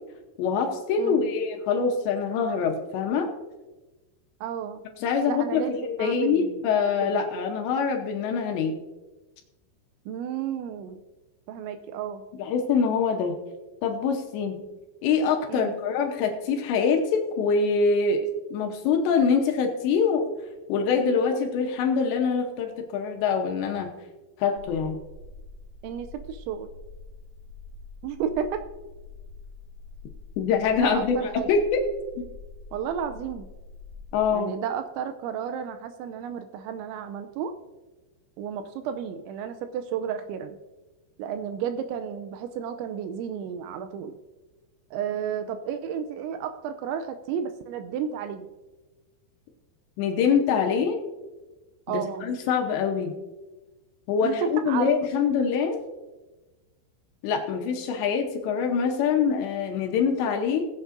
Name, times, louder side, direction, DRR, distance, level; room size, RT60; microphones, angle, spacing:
voice 1, 0.4-3.3 5.0-8.8 12.4-13.3 13.8-14.6 15.0-18.2 18.5-20.3 20.7-23.9 24.4-25.0 30.4-31.8 32.2-32.3 34.1-34.5 50.0-51.0 51.9-53.1 54.1-55.8 57.2-60.6, left 5 dB, 75° left, 3 dB, 2.9 m, -24 dB
voice 2, 1.0-1.3 4.4-4.8 5.3-6.7 7.0-7.2 10.1-11.0 11.5-12.2 15.5-15.8 25.8-26.7 28.0-28.6 30.8-31.5 32.7-33.5 34.3-37.5 38.4-40.6 41.2-44.1 44.9-48.5 51.9-52.3 54.2-54.9, right 8 dB, 85° right, 9 dB, 2.8 m, -32 dB
sound 1, 24.5-34.3, left 3 dB, 40° right, 1.9 m, -45 dB
20.5 x 8.0 x 2.6 m, 1.1 s
omnidirectional pair, 5.6 m